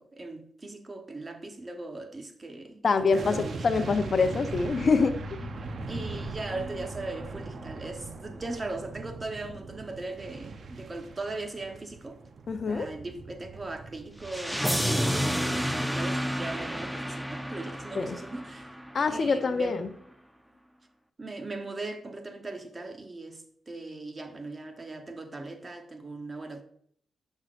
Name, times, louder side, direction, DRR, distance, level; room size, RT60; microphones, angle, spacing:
voice 1, 0.0-4.0 5.9-12.2 12.7-18.8 19.1-19.8 21.2-26.6, right 2 dB, 35° right, 1.0 m, -39 dB
voice 2, 2.8-5.2 12.5-12.9 17.9-18.2 18.9-19.9, left 4 dB, 55° left, 0.6 m, -25 dB
sound 1, 3.1-16.3 16.5-16.7, right 4 dB, 60° right, 0.6 m, -41 dB
sound 2, 5.0-10.6, left 4 dB, 25° left, 3.0 m, -46 dB
sound 3, 14.2-19.2, equal, 5° right, 0.6 m, -30 dB
7.4 x 6.3 x 2.5 m
supercardioid pair, 50°, 0 cm